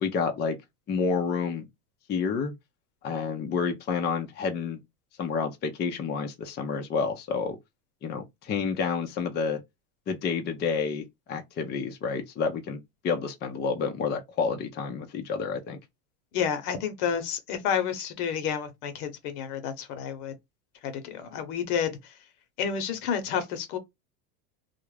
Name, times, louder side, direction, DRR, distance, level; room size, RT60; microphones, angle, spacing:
voice 1, 0.0-0.6 0.9-1.7 2.1-2.5 3.0-4.8 5.2-7.6 8.0-9.6 10.1-15.8, left 5 dB, 25° left, 0.5 m, -29 dB
voice 2, 16.3-20.3 20.8-22.1 22.6-23.8, left 7 dB, 75° left, 1.0 m, -30 dB
2.4 x 2.1 x 3.2 m
supercardioid pair, 115°, 46 cm